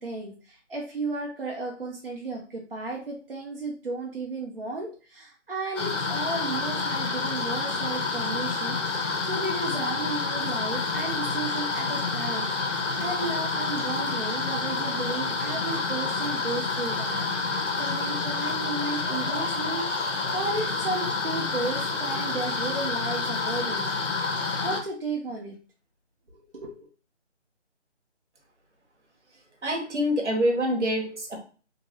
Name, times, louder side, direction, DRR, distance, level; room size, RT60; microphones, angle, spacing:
voice 1, 0.0-24.0 24.6-25.6 26.3-26.9, right 3 dB, 50° right, -2 dB, 0.6 m, -34 dB
sound 1, 5.8-24.8, left 3 dB, 85° left, 0.8 m, -28 dB
voice 2, 29.6-31.4, equal, 70° right, 2 dB, 1.1 m, -26 dB
2.8 x 2.4 x 2.9 m, 0.37 s
figure-of-eight pair, 175°, 36 cm